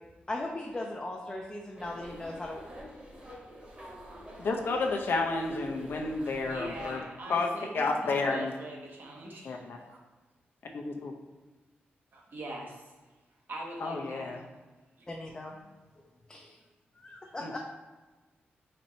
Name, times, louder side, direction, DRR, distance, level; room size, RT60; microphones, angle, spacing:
voice 1, 0.3-2.6 15.1-15.7 16.3-16.5 17.0-17.6, left 2 dB, 20° left, -1 dB, 0.5 m, -38 dB
sound 1, 1.8-7.0, equal, 30° right, 1.2 m, -47 dB
voice 2, 4.4-7.0 7.3-7.5 7.7-8.5 9.4-9.8 10.7-11.1 13.8-14.4 17.4-17.6, left 3 dB, 70° left, 2 dB, 0.6 m, -31 dB
voice 3, 6.3-10.0 12.1-12.9 13.5-14.3 15.0-15.1, right 1 dB, 60° right, -2 dB, 1.0 m, -43 dB
4.3 x 2.7 x 4.2 m, 1.2 s
wide cardioid pair, 105°, 4 cm